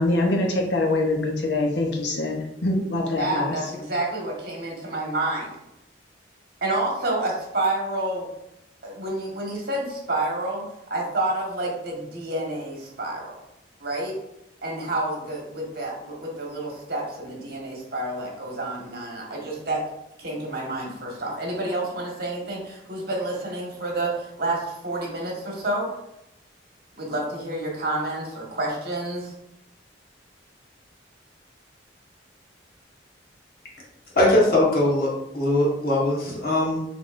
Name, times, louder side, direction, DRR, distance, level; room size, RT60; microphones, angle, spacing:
voice 1, 0.0-3.6, left 2 dB, 70° left, 1 dB, 0.8 m, -24 dB
voice 2, 3.2-5.5 6.6-8.2 8.8-10.6 10.9-13.3 13.8-14.1 14.6-19.8 20.2-25.9 27.0-29.3, right 2 dB, 50° right, -2 dB, 1.4 m, -29 dB
voice 3, 34.1-36.8, left 1 dB, 50° left, -4 dB, 1.4 m, -21 dB
6.1 x 3.5 x 2.5 m, 0.86 s
head